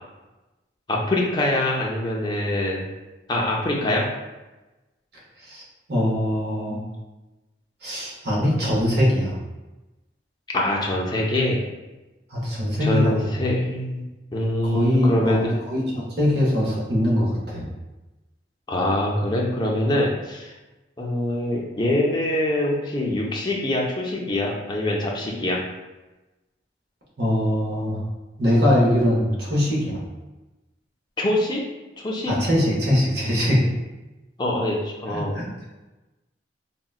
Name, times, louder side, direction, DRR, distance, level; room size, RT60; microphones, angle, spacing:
voice 1, 0.9-2.8 3.3-4.1 10.5-11.6 12.8-15.6 18.7-20.5 21.0-25.6 31.2-31.6 32.0-32.3 34.4-35.3, left 1 dB, 25° left, -2 dB, 0.4 m, -24 dB
voice 2, 5.4-6.8 7.8-9.4 12.3-13.4 14.6-17.7 27.2-28.0 28.4-30.0 32.3-33.6 35.1-35.4, equal, 65° right, -5 dB, 0.9 m, -22 dB
3.8 x 2.1 x 2.3 m, 1.1 s
head